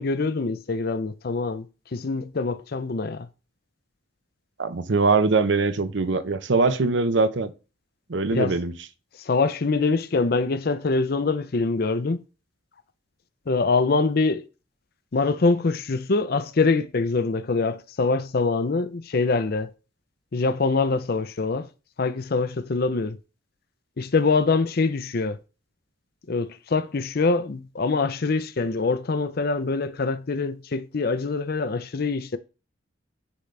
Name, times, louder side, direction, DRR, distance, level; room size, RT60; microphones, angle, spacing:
voice 1, 0.0-1.7 1.9-3.3 8.3-8.6 9.3-12.2 13.5-14.4 15.1-19.7 20.3-21.7 22.0-23.2 24.0-25.4 26.3-32.4, left 3 dB, 50° left, 0.5 m, -24 dB
voice 2, 4.6-7.5 8.1-8.7, right 3 dB, 65° right, 0.6 m, -22 dB
10.0 x 3.9 x 3.3 m
head